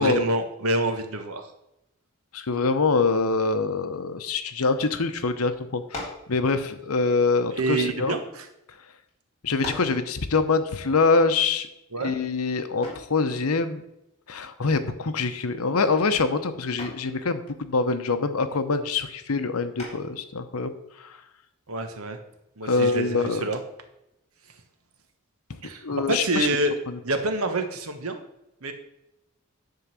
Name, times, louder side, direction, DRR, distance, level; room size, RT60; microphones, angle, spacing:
voice 1, 0.0-1.5 7.6-8.5 11.9-12.1 21.7-22.2 22.6-23.6 25.6-26.7 27.0-28.2 28.6-28.7, right 2 dB, 80° right, 7 dB, 1.3 m, -27 dB
voice 2, 2.3-8.2 9.4-11.7 12.0-13.8 14.3-21.2 22.6-23.4 25.8-26.5 26.9-27.0, left 4 dB, 90° left, 10 dB, 0.9 m, -25 dB
sound 1, 5.9-6.3 7.2-8.4 9.1-9.2 9.6-10.0 12.8-13.2 15.1-15.4 15.8-16.2 16.8-17.1 19.8-20.2, left 1 dB, 30° left, 3.6 m, -38 dB
10.5 x 3.9 x 7.5 m, 0.85 s
head